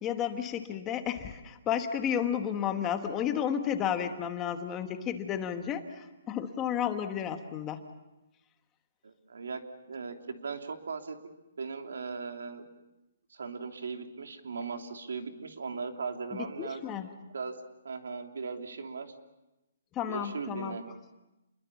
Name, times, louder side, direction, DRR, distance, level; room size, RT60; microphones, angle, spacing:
voice 1, 0.0-7.8 16.3-17.1 19.9-20.8, left 9 dB, 15° left, 7 dB, 1.2 m, -32 dB
voice 2, 9.0-9.6 9.8-11.2 11.6-12.7 13.3-16.8 17.3-17.5 17.8-19.1 20.1-20.8, right 5 dB, 85° right, 4 dB, 3.1 m, -38 dB
29.0 x 22.5 x 7.2 m, 0.99 s
hypercardioid pair, 175°, 0 cm